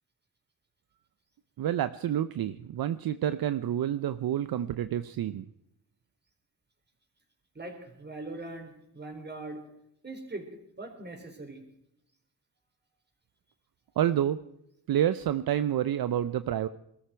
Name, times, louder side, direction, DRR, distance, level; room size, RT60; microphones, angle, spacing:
voice 1, 1.6-5.4 14.0-14.4 14.9-16.7, right 11 dB, 60° right, 13 dB, 0.7 m, -28 dB
voice 2, 7.5-9.6 10.0-10.5 10.8-11.6, right 2 dB, 25° right, 4 dB, 4.3 m, -41 dB
22.0 x 13.5 x 4.5 m, 0.79 s
cardioid pair, 105°, 40 cm